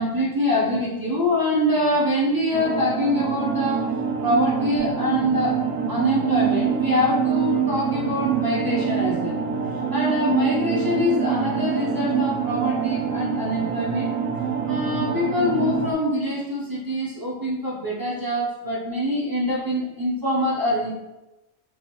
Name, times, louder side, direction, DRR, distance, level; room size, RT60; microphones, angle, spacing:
voice 1, 0.0-3.8 4.2-5.6 5.9-9.3 9.7-14.1 14.7-20.9, left 1 dB, 25° right, -6 dB, 0.5 m, -24 dB
sound 1, 2.5-15.9, right 8 dB, 70° right, 1.0 m, -25 dB
4.2 x 3.2 x 2.9 m, 1.0 s
omnidirectional pair, 1.5 m